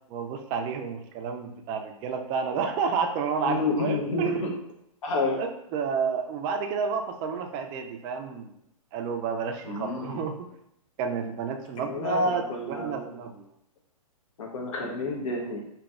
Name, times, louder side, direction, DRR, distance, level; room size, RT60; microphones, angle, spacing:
voice 1, 0.1-4.5 5.3-8.5 8.9-10.5 11.0-13.5, right 5 dB, 25° right, 5 dB, 0.4 m, -30 dB
voice 2, 3.4-4.5 5.0-5.4 9.6-10.2 11.8-13.1 14.4-15.6, left 3 dB, 65° left, 0 dB, 1.0 m, -30 dB
5.0 x 2.8 x 2.4 m, 0.75 s
hypercardioid pair, 135°, 18 cm